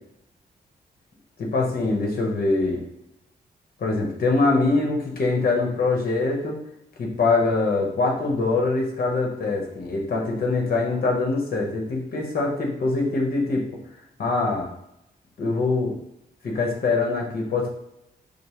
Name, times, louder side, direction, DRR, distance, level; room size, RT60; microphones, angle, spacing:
voice 1, 1.4-2.8 3.8-6.6 7.0-13.6 14.2-14.7 15.4-16.0 16.4-17.7, left 3 dB, 65° left, 0 dB, 1.0 m, -23 dB
5.2 x 2.1 x 3.0 m, 0.83 s
wide cardioid pair, 115°, 17 cm